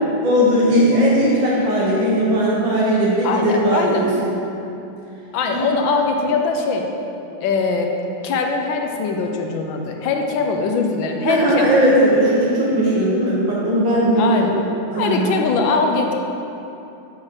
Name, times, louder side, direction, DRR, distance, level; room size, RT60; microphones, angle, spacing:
voice 1, 0.2-4.3 5.5-5.7 11.2-15.3, equal, 75° right, -6 dB, 1.9 m, -18 dB
voice 2, 3.2-4.1 5.3-6.9 7.4-7.9 8.2-11.8 14.2-14.5 15.0-16.1, left 4 dB, 90° left, 3 dB, 1.5 m, -21 dB
7.9 x 3.8 x 6.2 m, 2.8 s
omnidirectional pair, 2.1 m